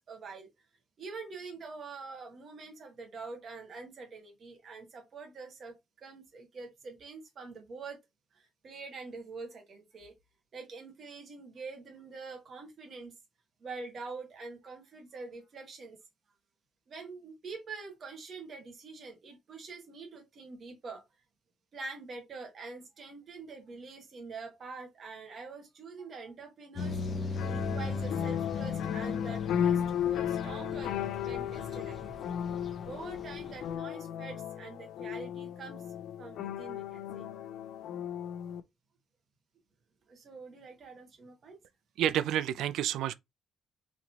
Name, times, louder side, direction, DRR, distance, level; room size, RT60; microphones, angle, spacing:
voice 1, 0.1-0.5 1.0-8.0 8.3-10.2 10.5-13.1 13.6-16.0 16.9-21.0 21.7-32.4 32.9-37.3 40.1-41.6, right 4 dB, 45° right, 1.6 m, -45 dB
sound 1, 26.7-33.7, left 4 dB, 35° left, 0.9 m, -38 dB
sound 2, 27.4-38.6, left 9 dB, 80° left, 0.4 m, -35 dB
voice 2, 42.0-43.1, right 11 dB, 80° right, 0.3 m, -29 dB
4.0 x 3.0 x 2.8 m
cardioid pair, 130°, 0 cm